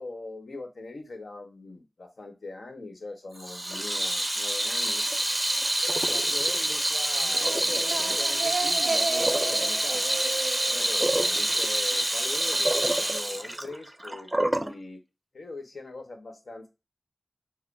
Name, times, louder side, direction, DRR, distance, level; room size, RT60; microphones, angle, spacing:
voice 1, 0.0-5.0 5.8-10.2 10.6-15.0 15.3-16.7, left 2 dB, 80° left, 4 dB, 1.1 m, -41 dB
Water tap faucet / Sink (filling or washing), 3.4-14.7, right 1 dB, 20° right, 0.5 m, -26 dB
sound 1, 7.2-11.9, right 4 dB, 90° right, 0.4 m, -34 dB
4.9 x 2.1 x 4.6 m, 0.26 s
wide cardioid pair, 50°, 0 cm